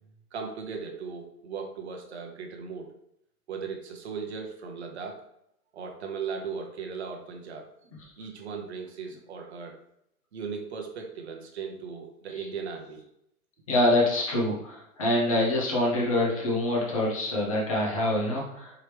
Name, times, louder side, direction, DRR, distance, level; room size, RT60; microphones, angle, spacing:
voice 1, 0.3-2.9 3.5-5.2 5.7-7.7 8.2-9.8 10.3-13.0, right 5 dB, 45° right, 3 dB, 0.8 m, -37 dB
voice 2, 13.7-18.7, left 1 dB, 25° left, -3 dB, 0.7 m, -25 dB
4.8 x 3.0 x 3.3 m, 0.77 s
hypercardioid pair, 170°, 45 cm